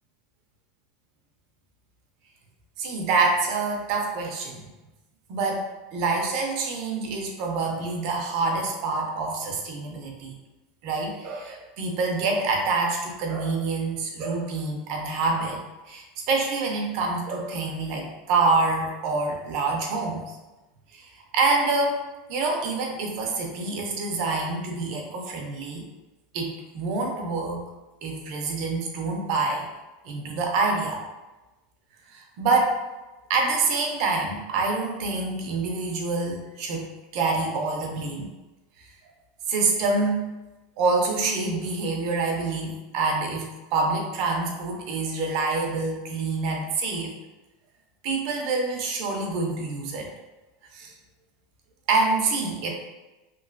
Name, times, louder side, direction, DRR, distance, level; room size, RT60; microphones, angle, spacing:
voice 1, 2.8-4.6 5.3-10.3 10.8-20.3 20.9-22.0 22.3-25.9 26.3-27.6 28.0-29.7 30.1-31.0 32.1-32.8 33.3-36.9 37.1-38.3 39.5-40.3 40.8-47.1 48.0-50.1 50.7-50.9 51.9-52.7, right 3 dB, 40° right, 1 dB, 0.5 m, -26 dB
3.0 x 2.6 x 2.5 m, 1.1 s
supercardioid pair, 180°, 0 cm